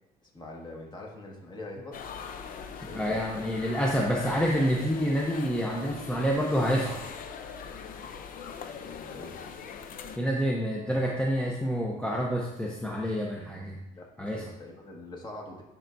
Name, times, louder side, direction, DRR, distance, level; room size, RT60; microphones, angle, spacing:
voice 1, 0.2-2.0 2.6-4.1 8.8-9.4 13.9-15.6, left 2 dB, 25° left, -1 dB, 1.7 m, -44 dB
sound 1, 1.9-10.2, left 6 dB, 55° left, 0.6 m, -41 dB
voice 2, 2.9-7.0 10.2-13.8 14.2-14.4, equal, 5° left, -2 dB, 0.7 m, -28 dB
10.5 x 4.5 x 2.6 m, 0.96 s
cardioid pair, 110°, 17 cm